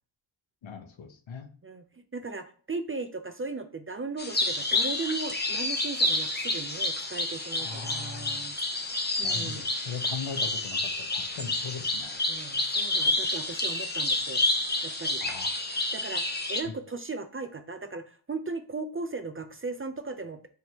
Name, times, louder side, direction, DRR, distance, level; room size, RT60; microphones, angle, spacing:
voice 1, 0.6-1.5 7.6-8.4 9.2-12.2 15.2-15.5 16.6-16.7, left 6 dB, 70° left, 7 dB, 0.8 m, -39 dB
voice 2, 1.6-8.6 9.2-9.6 12.3-14.4 14.8-15.2 15.9-20.5, right 3 dB, 30° right, 8 dB, 0.4 m, -37 dB
sound 1, 4.2-16.6, left 2 dB, 20° left, 0.9 m, -29 dB
4.3 x 3.5 x 2.9 m, 0.43 s
wide cardioid pair, 85°, 48 cm